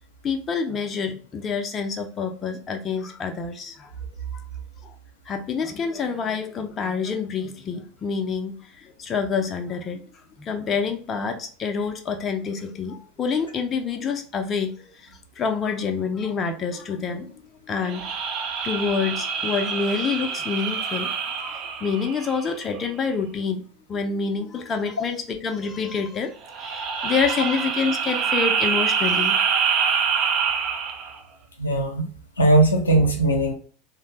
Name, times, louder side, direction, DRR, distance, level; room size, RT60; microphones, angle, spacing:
voice 1, 0.2-3.9 4.3-4.4 4.8-4.9 5.3-10.0 10.4-15.1 15.4-18.1 18.6-23.6 23.9-29.4, left 5 dB, 30° left, 5 dB, 0.5 m, -27 dB
sound 1, 17.9-22.6 26.4-31.2, right 6 dB, 50° right, 0.5 m, -25 dB
voice 2, 31.6-33.5, right 2 dB, 85° left, 2 dB, 0.6 m, -19 dB
3.1 x 2.1 x 2.9 m, 0.40 s
figure-of-eight pair, 80°, 0 cm